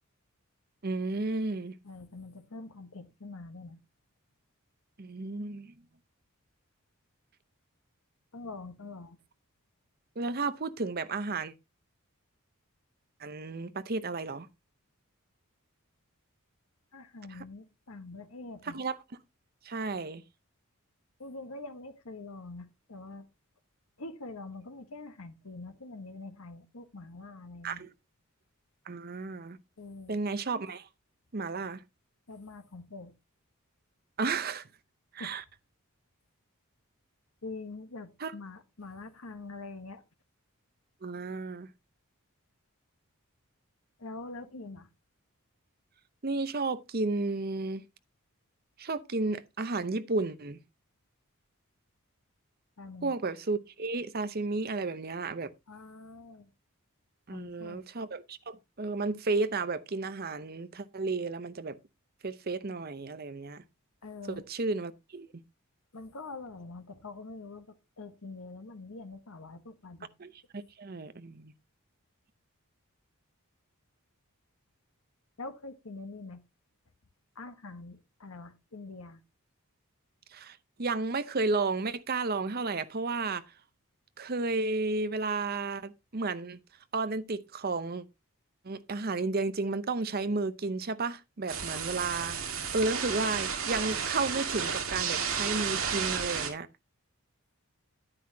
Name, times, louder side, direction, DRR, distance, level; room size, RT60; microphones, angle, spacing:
voice 1, 0.8-1.7 5.0-5.7 10.2-11.5 13.2-14.5 17.3-17.4 18.6-19.0 19.6-20.2 27.6-27.9 28.9-29.6 30.1-30.9 31.3-31.8 34.2-34.6 35.1-35.4 38.2-38.3 41.0-41.7 46.2-47.8 48.8-50.6 53.0-55.5 57.3-61.8 62.2-63.6 64.3-65.4 70.2-71.5 80.3-83.4 84.2-86.6 86.9-88.0 88.6-96.7, right 3 dB, 45° right, 0.7 m, -33 dB
voice 2, 1.8-3.8 8.3-9.2 16.9-18.8 21.2-23.3 24.0-27.8 29.8-30.2 31.5-31.7 32.3-33.1 35.2-35.4 37.4-40.0 44.0-44.9 52.8-53.1 55.7-56.5 57.3-57.8 64.0-64.4 65.9-70.1 75.4-76.4 77.3-79.2, left 3 dB, 75° left, 1.2 m, -44 dB
sound 1, 91.5-96.5, right 6 dB, 65° right, 2.0 m, -32 dB
9.8 x 9.6 x 2.8 m
head